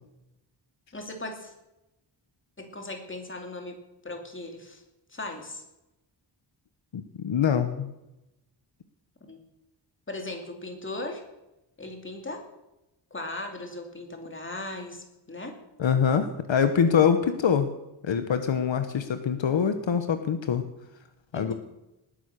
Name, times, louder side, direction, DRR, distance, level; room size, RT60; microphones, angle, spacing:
voice 1, 0.9-1.5 2.6-3.8 4.0-4.8 5.1-5.6 9.2-9.4 10.1-11.2 11.8-12.4 13.1-15.6 21.3-21.5, left 2 dB, 25° left, 3 dB, 2.6 m, -38 dB
voice 2, 6.9-7.9 15.8-17.7 18.0-20.6 21.3-21.5, left 7 dB, 70° left, 9 dB, 1.2 m, -24 dB
19.5 x 10.5 x 6.7 m, 0.94 s
wide cardioid pair, 175°, 46 cm